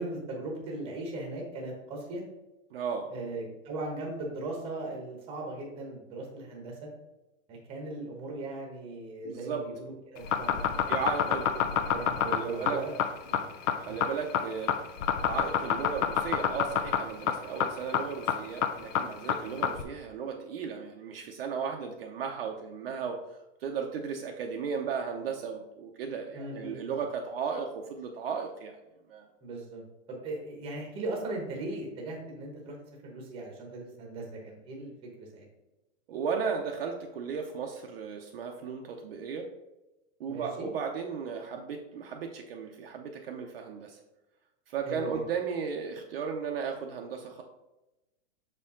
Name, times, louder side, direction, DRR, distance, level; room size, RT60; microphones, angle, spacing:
voice 1, 0.0-2.2 3.1-6.9 7.5-12.9 13.2-13.6 13.9-14.0 19.4-19.6 26.3-27.0 29.4-29.8 30.1-32.8 33.0-35.4 40.3-40.7 44.8-45.2, right 2 dB, 15° right, 0 dB, 0.9 m, -38 dB
voice 2, 2.7-3.1 9.2-9.7 10.9-11.5 12.3-12.8 13.8-14.8 15.2-23.2 23.6-28.8 29.1-29.3 36.1-39.5 40.2-44.0 44.7-47.4, right 6 dB, 50° right, 2 dB, 0.6 m, -35 dB
sound 1, 10.2-19.8, left 9 dB, 70° left, 0.7 m, -27 dB
6.3 x 4.4 x 3.6 m, 0.99 s
supercardioid pair, 170°, 39 cm